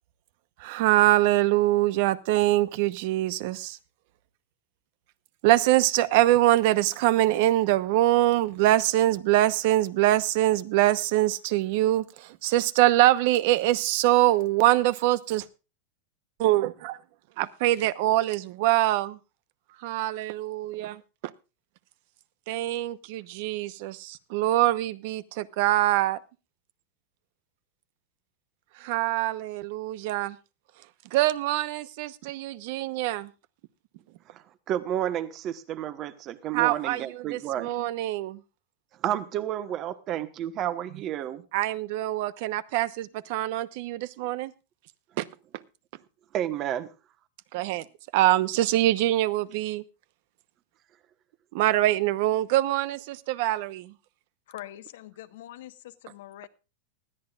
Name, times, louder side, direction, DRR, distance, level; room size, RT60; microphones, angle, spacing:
voice 1, 0.6-3.8 5.4-15.4 16.4-17.0 17.4-19.2 19.8-21.0 22.5-26.2 28.8-30.4 31.1-33.3 36.5-38.4 41.5-44.5 45.2-45.3 47.5-47.8 48.1-49.8 51.5-53.9, right 15 dB, 55° right, 0.9 m, -24 dB
voice 2, 34.7-37.7 39.0-41.4 46.3-46.9, right 11 dB, 35° right, 1.2 m, -31 dB
voice 3, 54.5-56.5, left 14 dB, 75° left, 1.2 m, -43 dB
20.0 x 14.0 x 2.4 m
supercardioid pair, 150°, 0 cm